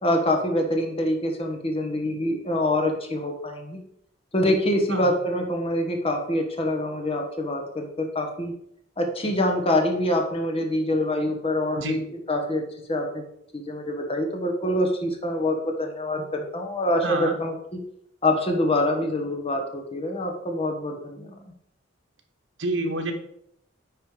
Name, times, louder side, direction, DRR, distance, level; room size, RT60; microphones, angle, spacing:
voice 1, 0.0-3.8 4.3-8.5 9.0-12.6 12.9-13.2 13.5-17.8 18.2-21.4, left 1 dB, 30° left, 3 dB, 1.2 m, -25 dB
voice 2, 17.0-17.3 22.6-23.1, right 2 dB, 70° right, 4 dB, 1.2 m, -28 dB
9.7 x 3.3 x 4.8 m, 0.73 s
head